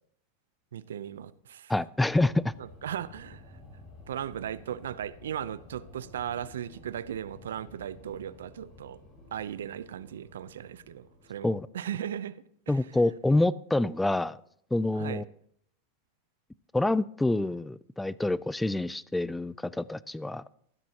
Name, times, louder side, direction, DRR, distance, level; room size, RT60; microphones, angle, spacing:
voice 1, 0.7-1.7 2.6-3.4 4.1-9.0 9.3-12.9 15.0-15.2, right 10 dB, 90° right, 0.6 m, -37 dB
voice 2, 1.7-2.5 11.4-11.7 12.7-14.4 14.7-15.2 16.7-20.4, left 2 dB, 5° left, 0.4 m, -27 dB
sound 1, 2.1-11.5, left 2 dB, 30° left, 5.2 m, -52 dB
14.5 x 12.5 x 2.9 m
supercardioid pair, 125°, 0 cm